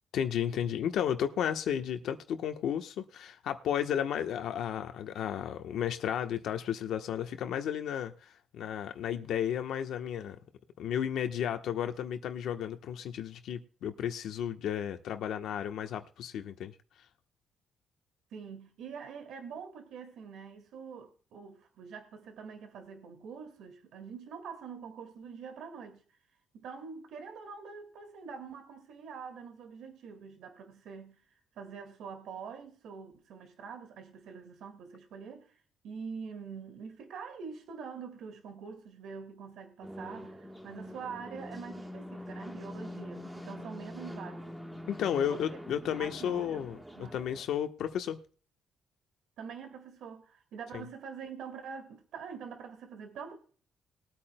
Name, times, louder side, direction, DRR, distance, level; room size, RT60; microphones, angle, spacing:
voice 1, 0.1-10.4 10.8-16.7 44.9-46.8 47.1-48.2 50.7-50.8, left 9 dB, 70° left, 1.0 m, -33 dB
voice 2, 18.3-26.0 26.5-31.2 31.6-35.6 35.8-44.6 45.1-45.6 46.0-46.7 46.9-47.2 49.4-53.4, right 6 dB, 70° right, 1.9 m, -45 dB
sound 1, 39.8-47.4, left 1 dB, 5° right, 1.3 m, -44 dB
21.0 x 8.8 x 2.2 m
cardioid pair, 145°, 0 cm